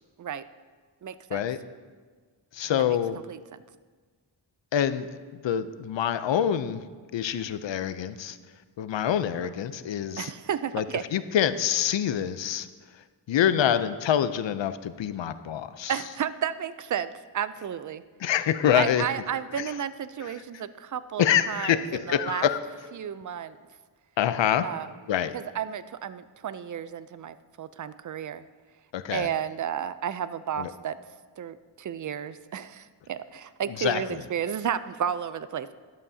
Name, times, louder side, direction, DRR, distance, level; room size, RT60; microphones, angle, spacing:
voice 1, 1.0-1.4 2.7-3.0 3.3-3.6 10.2-11.0 15.9-18.0 18.7-22.5 22.9-23.6 24.6-24.9 25.3-28.4 29.0-31.0 31.4-35.7, right 8 dB, 45° right, 14 dB, 0.4 m, -32 dB
voice 2, 2.5-3.2 4.7-5.1 5.4-6.8 7.1-8.4 8.8-10.3 10.7-10.8 11.1-12.7 13.3-15.9 18.2-19.0 21.2-22.6 24.2-24.7 25.1-25.3 28.9-29.3 30.6-30.7 33.8-34.0, left 9 dB, 75° left, 12 dB, 0.6 m, -25 dB
12.5 x 11.0 x 2.7 m, 1.5 s
wide cardioid pair, 115°, 44 cm